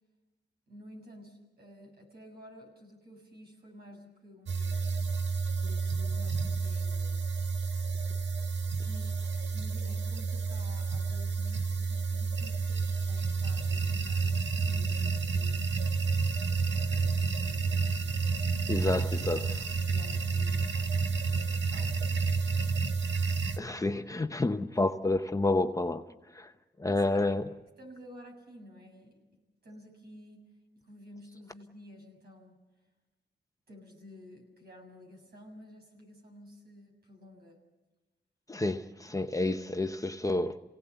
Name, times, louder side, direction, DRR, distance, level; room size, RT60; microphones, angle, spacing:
voice 1, 0.7-5.0 5.6-7.3 8.8-15.7 16.7-18.3 19.7-22.6 26.9-27.4 27.8-29.2 29.6-30.5 30.9-32.6 33.7-37.6, equal, 60° right, 7.0 m, -52 dB
sound 1, 4.5-23.6, right 4 dB, 85° right, 1.5 m, -30 dB
voice 2, 18.7-19.7 23.6-26.0 26.3-26.5 26.8-27.5 38.5-40.6, left 2 dB, 20° left, 0.9 m, -29 dB
27.5 x 18.0 x 8.2 m
wide cardioid pair, 95°, 18 cm